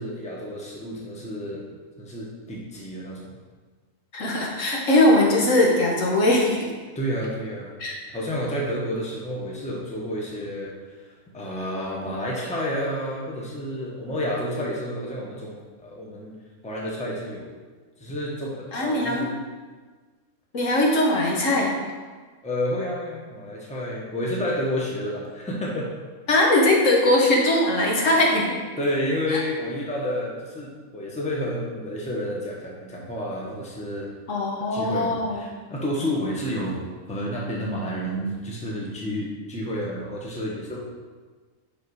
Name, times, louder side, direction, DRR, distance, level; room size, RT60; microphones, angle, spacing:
voice 1, 0.0-1.6 2.0-3.3 6.9-7.7 8.1-10.7 11.3-16.3 16.6-17.5 18.0-19.3 22.4-25.9 28.8-34.1 34.7-40.8, equal, 5° left, -3 dB, 1.0 m, -30 dB
voice 2, 4.1-6.7 7.8-7.9 18.7-19.3 20.5-21.7 26.3-28.5 34.3-35.4, left 1 dB, 60° left, -2 dB, 1.4 m, -20 dB
5.7 x 5.3 x 4.8 m, 1.4 s
omnidirectional pair, 1.6 m